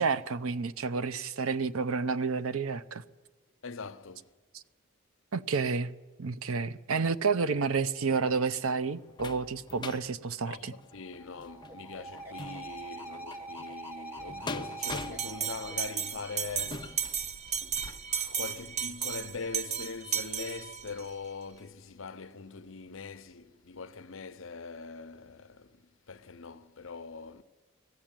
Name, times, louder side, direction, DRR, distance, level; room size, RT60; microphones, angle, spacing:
voice 1, 0.0-3.0 4.5-4.6 5.3-5.9 6.2-10.7, right 5 dB, 75° right, 0.7 m, -30 dB
voice 2, 3.6-4.3 10.5-17.0 18.1-27.4, left 4 dB, 60° left, 0.8 m, -42 dB
sound 1, 8.2-18.1 18.6-18.7 19.1-19.2, left 3 dB, 20° left, 0.5 m, -45 dB
sound 2, 10.6-16.9, right 2 dB, 10° right, 1.5 m, -44 dB
Bell, 14.8-21.1, right 8 dB, 35° right, 0.7 m, -34 dB
20.5 x 14.0 x 9.0 m
head